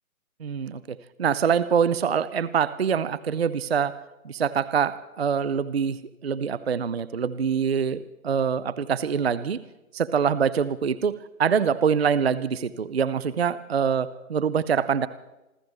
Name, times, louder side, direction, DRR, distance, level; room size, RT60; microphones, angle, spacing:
voice 1, 0.4-3.9 4.2-9.6 9.9-11.1 11.4-15.1, right 7 dB, 45° right, 17 dB, 0.5 m, -25 dB
27.0 x 14.0 x 3.5 m, 1.0 s
figure-of-eight pair, 145°, 43 cm